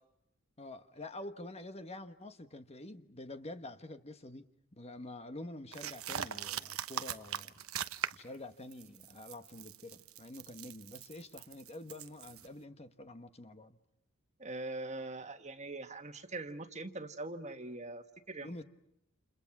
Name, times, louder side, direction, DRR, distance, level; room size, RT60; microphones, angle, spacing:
voice 1, 0.6-7.5 8.1-13.8 18.4-18.6, left 1 dB, 30° left, 1.3 m, -47 dB
sound 1, 5.7-8.3 8.7-12.5, right 9 dB, 75° right, 1.0 m, -41 dB
voice 2, 14.4-18.6, right 2 dB, 30° right, 1.7 m, -42 dB
30.0 x 29.0 x 6.0 m
head